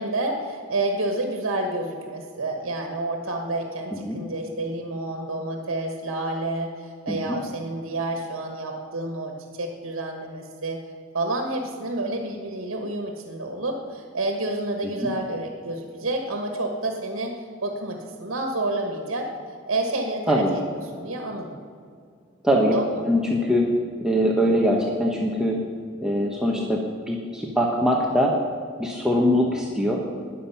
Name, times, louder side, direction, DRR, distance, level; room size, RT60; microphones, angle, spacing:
voice 1, 0.0-10.8 11.1-19.3 19.7-20.6 20.9-21.6 22.7-23.0, right 2 dB, 90° right, 3 dB, 1.4 m, -29 dB
voice 2, 7.1-7.4 15.0-15.1 20.3-20.5 22.4-22.7 23.0-23.6 24.0-25.6 26.0-28.3 28.8-30.0, equal, 5° right, -2 dB, 1.0 m, -22 dB
20.0 x 7.4 x 5.7 m, 2.3 s
head